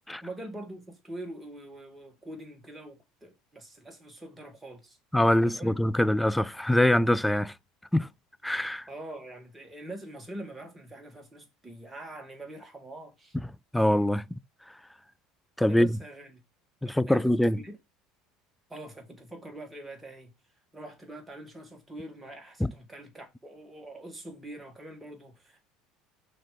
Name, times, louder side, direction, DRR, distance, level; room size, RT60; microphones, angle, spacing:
voice 1, 0.2-5.0 5.4-5.7 8.9-13.4 15.7-16.4 16.8-17.7 18.7-20.3 20.7-25.6, right 1 dB, 10° right, 2.2 m, -44 dB
voice 2, 5.1-7.5 7.9-8.1 8.4-8.9 13.7-14.4 15.6-16.0 16.8-17.6 22.6-22.7, left 1 dB, 5° left, 0.4 m, -24 dB
5.8 x 3.2 x 5.1 m
hypercardioid pair, 85°, 0 cm